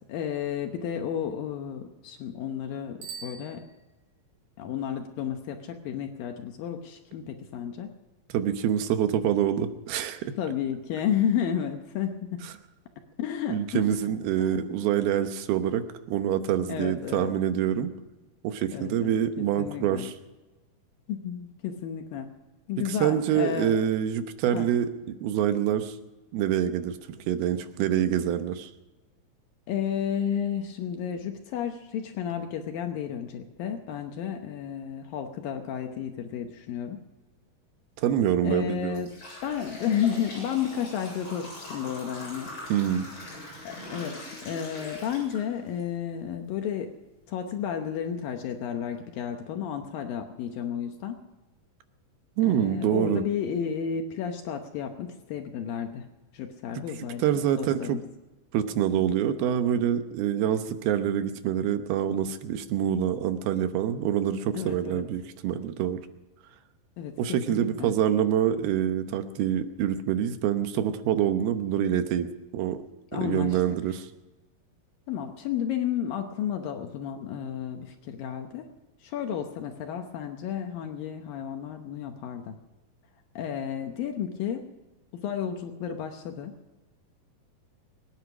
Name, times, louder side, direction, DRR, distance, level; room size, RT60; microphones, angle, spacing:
voice 1, 0.1-3.6 4.6-7.9 10.4-12.4 13.2-13.9 14.4-14.8 16.7-17.3 18.7-20.1 21.1-22.3 22.7-23.7 24.5-24.7 29.7-37.0 38.4-39.1 39.4-42.5 43.6-46.9 47.3-51.2 52.4-56.1 56.3-58.0 64.5-65.0 67.0-67.1 67.5-68.0 73.1-73.6 75.1-78.7 79.0-82.6 83.4-84.6 85.1-86.5, left 8 dB, 75° left, 5 dB, 2.6 m, -32 dB
Bicycle bell, 3.0-4.3, right 6 dB, 55° right, 5.6 m, -44 dB
voice 2, 8.3-10.3 13.5-17.9 18.4-20.1 22.9-26.0 26.3-27.0 27.3-28.7 38.0-39.0 42.7-43.1 52.4-53.2 57.2-58.0 58.5-66.0 67.2-72.3 72.5-72.8 73.1-74.1, right 10 dB, 80° right, 9 dB, 2.9 m, -26 dB
sound 1, 38.0-38.2 38.7-45.8 46.3-46.4 47.2-47.3 47.8-47.9 48.4-48.6, left 1 dB, 40° left, 9.1 m, -42 dB
23.0 x 10.0 x 6.1 m, 1.1 s
omnidirectional pair, 4.4 m